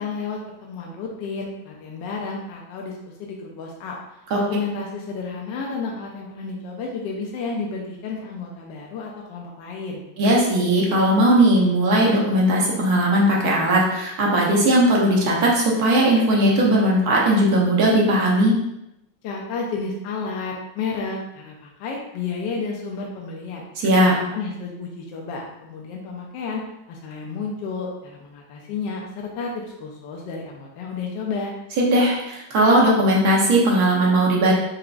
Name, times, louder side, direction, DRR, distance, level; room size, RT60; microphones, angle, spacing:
voice 1, 0.0-2.9 3.2-4.0 4.4-10.1 19.2-23.6 24.0-26.6 26.9-31.6, left 4 dB, 75° left, -1 dB, 1.2 m, -31 dB
voice 2, 10.2-18.5 23.8-24.1 31.8-34.5, right 1 dB, 60° right, -3 dB, 1.2 m, -18 dB
4.6 x 2.9 x 2.4 m, 0.86 s
omnidirectional pair, 2.1 m